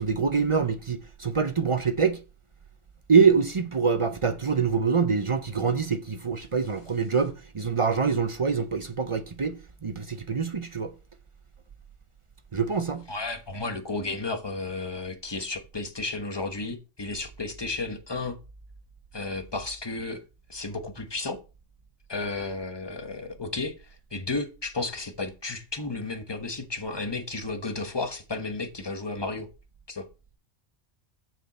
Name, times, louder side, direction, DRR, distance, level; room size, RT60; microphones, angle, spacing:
voice 1, 0.0-2.2 3.1-10.9 12.5-13.0, right 5 dB, 40° right, 0.4 m, -25 dB
voice 2, 13.1-18.4 19.1-20.2 20.5-21.4 22.1-29.5 29.9-30.1, left 3 dB, 20° left, 1.1 m, -33 dB
7.5 x 6.7 x 4.2 m
omnidirectional pair, 1.3 m